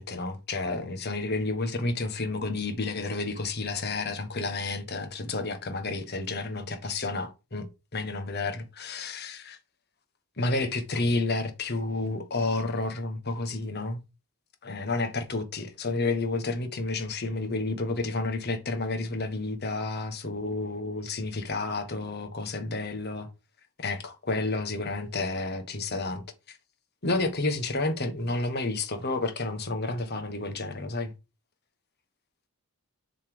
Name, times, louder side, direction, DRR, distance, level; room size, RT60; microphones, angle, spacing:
voice 1, 0.0-9.6 10.4-14.0 14.6-23.3 23.8-26.6 27.0-31.1, left 3 dB, 50° left, 1.4 m, -30 dB
7.3 x 4.2 x 5.0 m
head